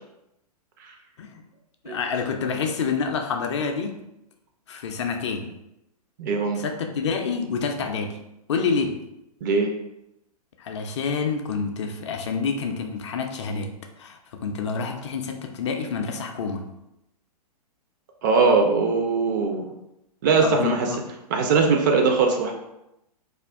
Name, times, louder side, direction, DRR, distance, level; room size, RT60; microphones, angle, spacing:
voice 1, 1.8-4.0 4.7-5.5 6.6-8.2 8.5-9.0 10.6-13.7 14.0-16.6 20.4-21.0, left 5 dB, 45° left, 3 dB, 0.4 m, -28 dB
voice 2, 6.2-6.6 9.4-9.7 18.2-19.7 20.2-20.9 21.3-22.5, right 4 dB, 30° right, 3 dB, 0.4 m, -21 dB
2.4 x 2.2 x 3.2 m, 0.87 s
figure-of-eight pair, 110°, 20 cm